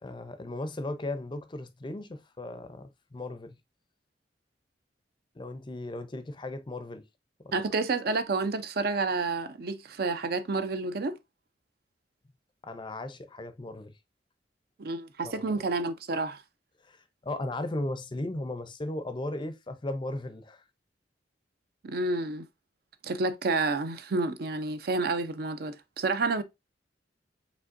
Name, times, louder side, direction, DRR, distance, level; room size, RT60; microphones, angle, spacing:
voice 1, 0.0-3.6 5.3-7.1 7.4-7.6 12.6-14.0 15.2-15.7 16.8-20.6, left 2 dB, 25° left, 0.5 m, -36 dB
voice 2, 7.5-11.2 14.8-16.4 21.8-22.4 23.0-26.4, right 3 dB, 55° right, 0.5 m, -29 dB
5.1 x 3.5 x 2.5 m
head